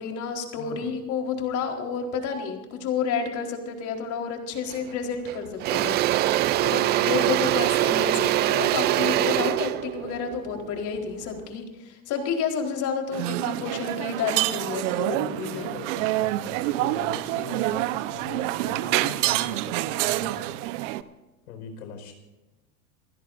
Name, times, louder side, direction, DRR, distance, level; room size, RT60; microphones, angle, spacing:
voice 1, 0.0-5.9 6.2-15.7, left 6 dB, 40° left, 2 dB, 4.2 m, -30 dB
voice 2, 0.6-0.9 15.0-20.5 21.5-22.1, left 5 dB, 75° left, 5 dB, 4.9 m, -41 dB
Engine / Drill, 4.7-4.9 5.3-11.4, right 14 dB, 25° right, 0.4 m, -24 dB
sound 1, 13.1-21.0, right 16 dB, 55° right, 1.0 m, -27 dB
28.5 x 16.0 x 2.6 m, 1.1 s
hypercardioid pair, 115°, 44 cm